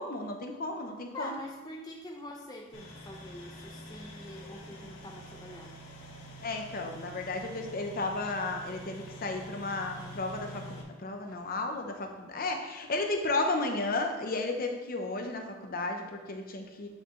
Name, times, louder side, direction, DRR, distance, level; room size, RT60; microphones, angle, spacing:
voice 1, 0.0-1.4 6.4-16.9, left 2 dB, 45° left, 4 dB, 0.8 m, -33 dB
voice 2, 1.1-5.7, left 1 dB, 20° left, -1 dB, 0.6 m, -45 dB
sound 1, 2.7-10.8, equal, 75° left, 2.0 m, -46 dB
8.3 x 6.4 x 3.2 m, 1.1 s
head